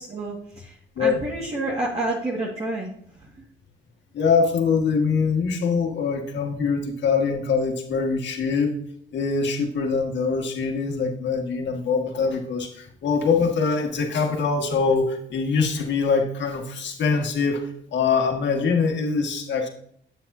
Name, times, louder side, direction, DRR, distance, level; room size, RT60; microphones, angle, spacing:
voice 1, 0.0-3.4, right 2 dB, 30° right, -4 dB, 2.0 m, -30 dB
voice 2, 4.1-8.8 9.1-17.6 17.9-19.7, left 5 dB, 65° left, 2 dB, 2.0 m, -23 dB
9.0 x 8.0 x 2.8 m, 0.66 s
cardioid pair, 90°, 20 cm